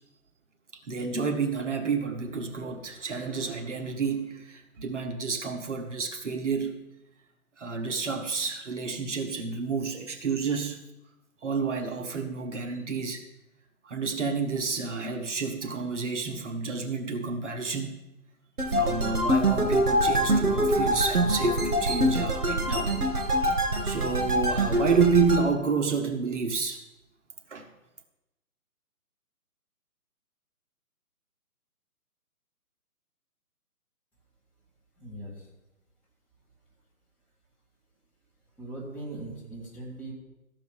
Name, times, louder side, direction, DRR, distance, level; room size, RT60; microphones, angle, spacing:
voice 1, 0.9-6.9 7.6-10.8 11.4-13.2 13.8-18.0 18.7-23.0 23.5-26.8 27.5-27.7, right 5 dB, 50° right, 4 dB, 1.2 m, -29 dB
sound 1, 18.6-25.4, right 1 dB, 75° right, 2.7 m, -25 dB
voice 2, 35.0-35.5 38.6-40.1, right 2 dB, 5° left, -7 dB, 1.7 m, -40 dB
13.5 x 5.4 x 7.2 m, 0.96 s
figure-of-eight pair, 150°, 45 cm